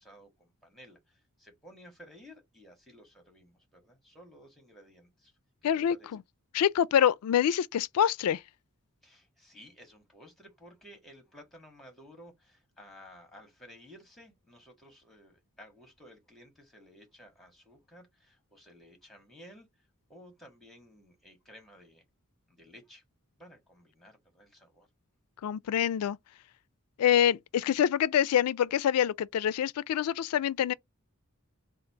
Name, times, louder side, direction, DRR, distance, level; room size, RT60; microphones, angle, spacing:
voice 1, 0.0-5.3 5.6-6.1 9.0-22.0 22.5-23.0 23.4-24.9, equal, ahead, 1.8 m, -55 dB
voice 2, 5.6-6.0 6.5-8.4 25.4-26.2 27.0-30.7, left 9 dB, 80° left, 0.3 m, -26 dB
3.8 x 2.4 x 4.6 m
head